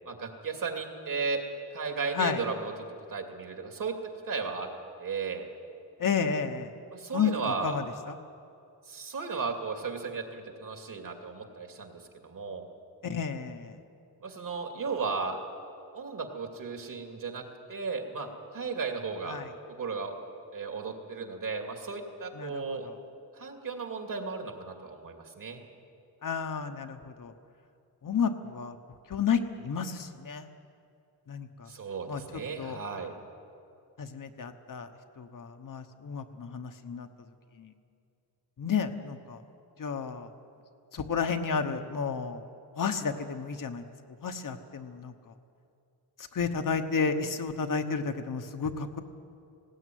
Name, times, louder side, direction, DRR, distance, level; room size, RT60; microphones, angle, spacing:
voice 1, 0.0-1.4 1.7-2.7 3.1-3.9 4.3-4.7 5.0-5.5 6.9-7.8 8.9-12.6 14.2-15.4 15.9-17.4 17.7-19.4 19.8-20.2 20.5-22.9 23.3-25.6 31.7-33.1, right 4 dB, 50° right, 3 dB, 2.6 m, -35 dB
voice 2, 6.0-6.7 7.1-7.3 7.6-8.1 13.0-13.7 19.3-19.5 22.4-22.8 26.2-27.3 28.0-28.7 29.1-30.5 31.3-31.7 32.1-32.2 32.6-32.8 34.0-34.9 35.2-37.1 37.6-37.7 38.6-39.4 39.8-40.3 40.9-42.4 42.8-43.8 44.2-45.1 46.3-49.0, left 6 dB, 50° left, 6 dB, 1.2 m, -31 dB
19.0 x 17.0 x 9.4 m, 2.5 s
wide cardioid pair, 155°, 42 cm